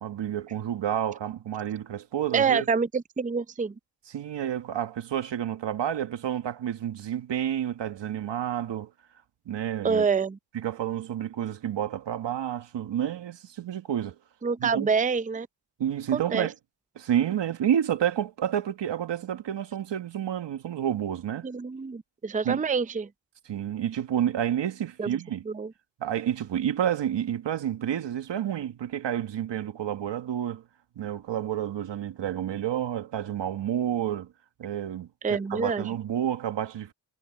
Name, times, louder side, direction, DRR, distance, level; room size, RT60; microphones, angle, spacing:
voice 1, 0.0-2.7 4.1-8.9 9.4-10.1 10.5-14.1 14.6-14.9 15.8-16.5 16.9-21.5 22.4-22.6 23.5-25.4 26.0-30.6 30.9-34.3 34.6-36.9, right 10 dB, 85° right, 1.7 m, -29 dB
voice 2, 2.3-3.7 9.8-10.4 14.4-15.5 16.1-16.5 21.4-23.1 25.0-25.2 25.5-25.7 35.2-35.8, right 5 dB, 20° right, 0.6 m, -26 dB
cardioid pair, 95°, 42 cm